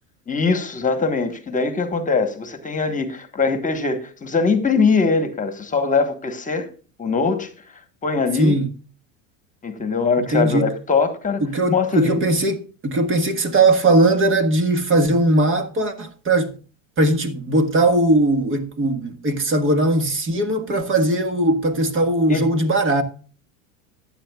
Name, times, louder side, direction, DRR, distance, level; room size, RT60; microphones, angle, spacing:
voice 1, 0.3-6.7 7.0-7.5 8.0-8.6 9.6-11.4 11.7-12.2 22.3-22.5, left 4 dB, 20° left, 1.5 m, -21 dB
voice 2, 8.4-8.7 10.2-10.7 11.4-16.5 17.0-23.0, right 2 dB, 30° right, 1.7 m, -19 dB
15.0 x 10.0 x 2.4 m
supercardioid pair, 115°, 40 cm